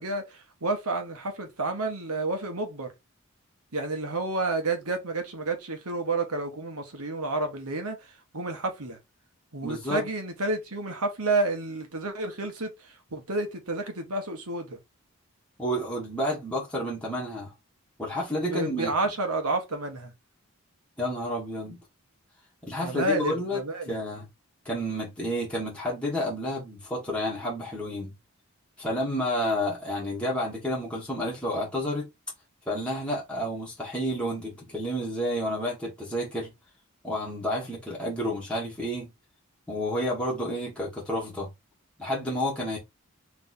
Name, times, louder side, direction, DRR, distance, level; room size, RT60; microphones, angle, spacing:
voice 1, 0.0-2.9 3.7-9.0 9.5-14.8 18.5-20.1 22.8-24.0, right 2 dB, 90° right, 1.4 m, -30 dB
voice 2, 9.6-10.0 15.6-17.5 18.0-18.9 21.0-21.8 22.6-23.6 23.9-24.3 24.6-28.1 28.8-32.1 32.7-36.5 37.0-39.1 39.7-41.5 42.0-42.8, equal, 5° left, 1.5 m, -30 dB
3.5 x 3.3 x 4.0 m
head